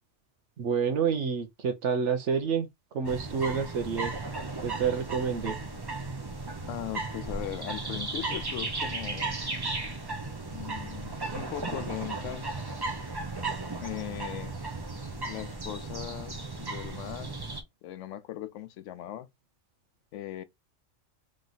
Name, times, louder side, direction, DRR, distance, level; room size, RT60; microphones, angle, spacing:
voice 1, 0.6-2.7 2.9-4.1 4.6-5.6, right 6 dB, 75° right, 1.0 m, -28 dB
sound 1, 3.0-17.6, right 3 dB, 25° right, 0.7 m, -35 dB
voice 2, 6.7-9.4 10.5-12.5 13.8-14.5 15.3-17.4 17.8-19.3 20.1-20.4, left 13 dB, 85° left, 0.9 m, -39 dB
3.2 x 3.1 x 3.9 m
omnidirectional pair, 1.2 m